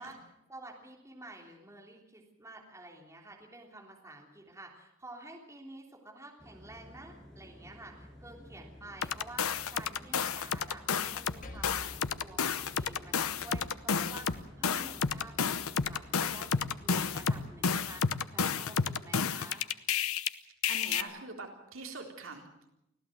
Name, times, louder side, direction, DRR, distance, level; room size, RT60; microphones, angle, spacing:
voice 1, 0.0-10.8 11.1-19.7, right 2 dB, 15° right, 0 dB, 3.3 m, -50 dB
sound 1, 6.4-18.0, equal, ahead, 5.5 m, -53 dB
sound 2, 9.0-11.4 11.6-20.3 20.6-21.0, left 6 dB, 85° left, 0.9 m, -31 dB
Percussion, 11.4-16.2, left 1 dB, 35° left, 1.9 m, -53 dB
voice 2, 20.7-22.7, right 3 dB, 65° right, 2 dB, 3.9 m, -43 dB
25.0 x 16.0 x 7.8 m, 0.84 s
head